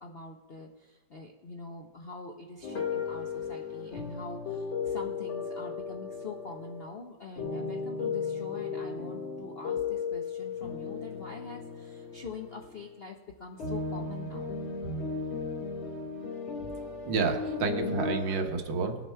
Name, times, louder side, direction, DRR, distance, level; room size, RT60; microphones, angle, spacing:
voice 1, 0.0-14.5, left 3 dB, 60° left, 2 dB, 0.6 m, -44 dB
sound 1, 2.6-6.9 7.4-13.0 13.6-18.1, left 5 dB, 85° left, 3.3 m, -35 dB
voice 2, 16.8-19.0, right 4 dB, 75° right, 5 dB, 1.8 m, -30 dB
20.0 x 6.8 x 4.5 m, 1.3 s
omnidirectional pair, 2.0 m